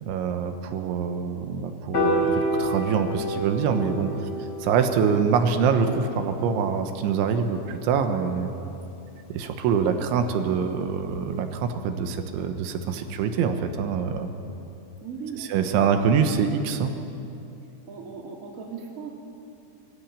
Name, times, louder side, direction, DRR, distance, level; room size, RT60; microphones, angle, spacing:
voice 1, 0.0-4.2 4.6-8.5 9.3-14.3 15.5-16.9, right 6 dB, 85° right, 6 dB, 3.5 m, -25 dB
Piano, 1.9-8.2, equal, 40° left, 4.6 m, -30 dB
voice 2, 15.0-15.9 17.9-19.1, right 5 dB, 30° right, 0 dB, 1.5 m, -38 dB
24.0 x 15.0 x 8.8 m, 2.7 s
omnidirectional pair, 5.4 m